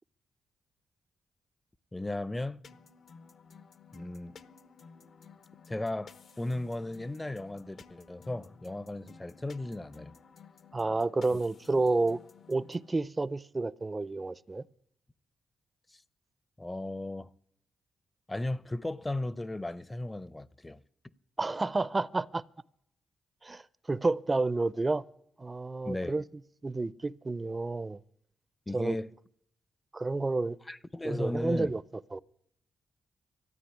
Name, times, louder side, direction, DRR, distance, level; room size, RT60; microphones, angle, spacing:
voice 1, 1.9-2.6 3.9-4.3 5.7-10.1 15.9-16.0 16.6-17.3 18.3-20.8 25.8-26.2 28.7-29.1 30.7-31.7, left 2 dB, 20° left, 0.6 m, -36 dB
sound 1, 2.6-12.9, left 5 dB, 65° left, 1.0 m, -54 dB
voice 2, 10.7-12.2 12.5-14.6 21.4-22.4 23.4-25.1 25.4-26.2 26.6-28.0 28.7-29.0 29.9-30.6 31.0-31.8 32.1-32.2, right 3 dB, 30° right, 0.6 m, -30 dB
13.5 x 9.2 x 10.0 m
supercardioid pair, 55°, 0 cm